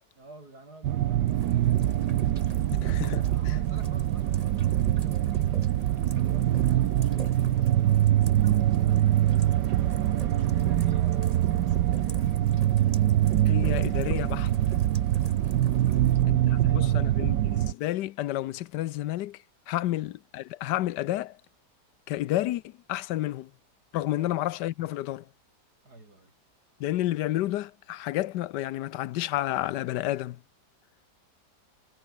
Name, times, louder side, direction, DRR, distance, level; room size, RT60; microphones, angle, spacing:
voice 1, 0.2-5.2 5.8-10.0 10.3-12.9 15.8-17.0 19.8-20.0 24.2-24.4 25.8-26.3, right 2 dB, 65° right, 7.7 m, -51 dB
sound 1, 0.8-17.7, right 12 dB, 85° right, 1.4 m, -24 dB
Rain, 1.3-16.2, right 2 dB, 20° right, 3.5 m, -48 dB
voice 2, 2.8-3.6 13.5-14.5 16.3-21.4 22.1-23.5 23.9-25.3 26.8-30.4, left 14 dB, 85° left, 1.3 m, -31 dB
omnidirectional pair, 1.8 m